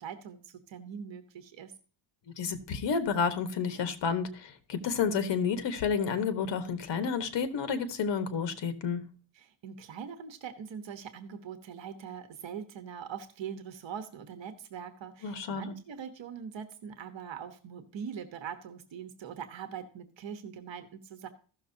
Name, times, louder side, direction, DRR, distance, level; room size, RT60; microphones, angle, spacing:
voice 1, 0.0-1.7 9.3-21.3, right 7 dB, 65° right, 8 dB, 1.2 m, -42 dB
voice 2, 2.4-9.0 15.2-15.7, left 6 dB, 60° left, 9 dB, 1.4 m, -30 dB
15.5 x 6.5 x 2.7 m, 0.40 s
cardioid pair, 120°, 48 cm